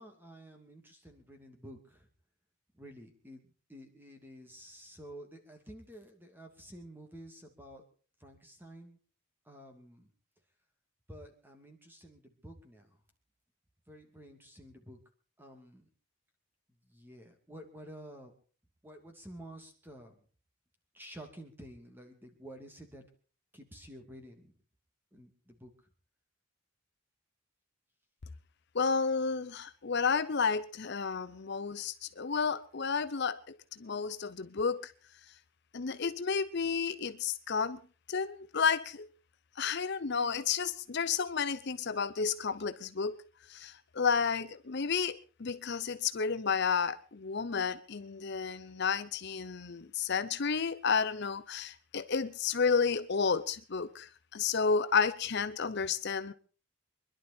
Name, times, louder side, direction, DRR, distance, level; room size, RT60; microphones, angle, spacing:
voice 1, 0.0-2.1 2.7-7.8 8.2-9.0 9.4-10.1 11.1-13.0 13.9-15.0 15.4-15.9 16.9-18.3 18.8-20.2 20.9-23.0 23.5-24.5 25.1-25.7, right 1 dB, 10° right, 3 dB, 2.7 m, -51 dB
voice 2, 28.7-34.9 35.7-37.8 38.1-39.1 39.6-43.2 43.5-56.3, left 5 dB, 55° left, 11 dB, 0.7 m, -31 dB
25.5 x 11.5 x 4.4 m, 0.39 s
head